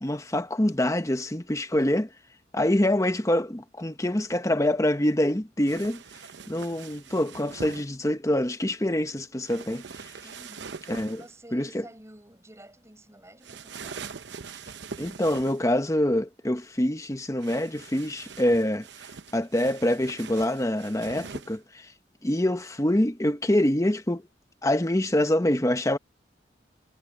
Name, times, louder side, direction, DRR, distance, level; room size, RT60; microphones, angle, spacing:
voice 1, 0.0-2.1 2.5-6.0 6.5-9.8 10.9-11.2 11.5-11.8 15.0-18.9 19.3-21.9 22.2-24.2 24.6-26.0, left 1 dB, 15° left, 1.0 m, -25 dB
sound 1, 5.7-7.9 9.5-11.3 13.4-15.7 17.4-21.6, right 5 dB, 75° right, 0.8 m, -43 dB
voice 2, 10.2-10.8 11.1-14.2, right 1 dB, 15° right, 5.3 m, -50 dB
head